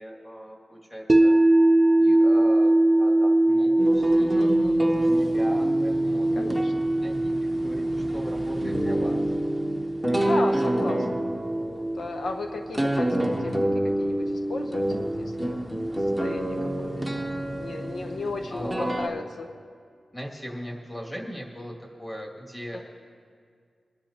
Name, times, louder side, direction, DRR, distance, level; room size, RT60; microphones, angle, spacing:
voice 1, 0.0-1.3 2.0-4.4 4.8-6.3 7.0-9.2 10.0-10.3 18.1-18.2 18.5-19.1 20.1-22.8, equal, 15° left, -3 dB, 2.2 m, -39 dB
sound 1, 1.1-13.2, right 1 dB, 20° right, 0.5 m, -23 dB
sound 2, 3.8-19.1, right 1 dB, ahead, 0.9 m, -28 dB
voice 2, 4.3-5.0 6.4-6.9 10.2-11.3 11.6-13.7 14.0-14.2 14.5-15.7 16.2-19.5 22.7-22.8, left 3 dB, 75° left, 4 dB, 0.8 m, -35 dB
24.5 x 10.5 x 2.9 m, 2.1 s
wide cardioid pair, 125°, 0 cm